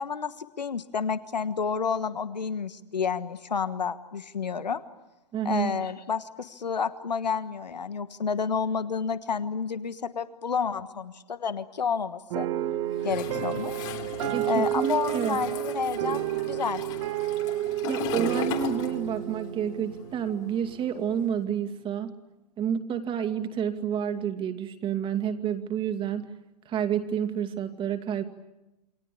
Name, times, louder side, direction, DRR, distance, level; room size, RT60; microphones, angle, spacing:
voice 1, 0.0-4.8 5.4-12.5 13.0-13.9 14.5-16.8, left 6 dB, 90° left, 12 dB, 1.4 m, -30 dB
voice 2, 5.3-5.7 14.3-15.4 17.9-22.1 22.6-26.3 26.7-28.2, right 8 dB, 25° right, 8 dB, 2.4 m, -29 dB
sound 1, 12.3-20.9, right 13 dB, 50° right, 2.2 m, -31 dB
Toilet flush, 13.0-19.5 19.7-21.3, left 10 dB, 50° left, 3.2 m, -38 dB
28.5 x 23.5 x 8.7 m, 0.97 s
hypercardioid pair, 120°, 21 cm